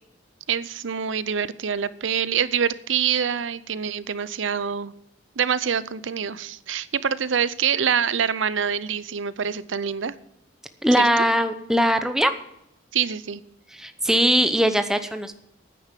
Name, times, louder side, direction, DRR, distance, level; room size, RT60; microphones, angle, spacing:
voice 1, 0.5-4.9 5.4-10.1 12.9-13.4, right 7 dB, 85° right, 17 dB, 0.6 m, -25 dB
voice 2, 10.8-12.3 13.7-15.3, equal, 5° right, 8 dB, 0.7 m, -20 dB
10.0 x 9.4 x 7.4 m, 0.80 s
head